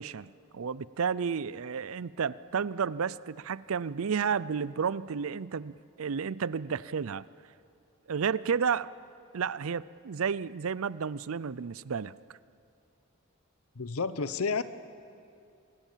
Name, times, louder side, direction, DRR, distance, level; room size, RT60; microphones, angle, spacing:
voice 1, 0.0-7.3 8.1-8.9 9.3-12.1, right 6 dB, 70° right, 19 dB, 0.5 m, -32 dB
voice 2, 13.8-14.6, left 4 dB, 80° left, 14 dB, 0.9 m, -30 dB
26.5 x 20.5 x 7.4 m, 2.6 s
head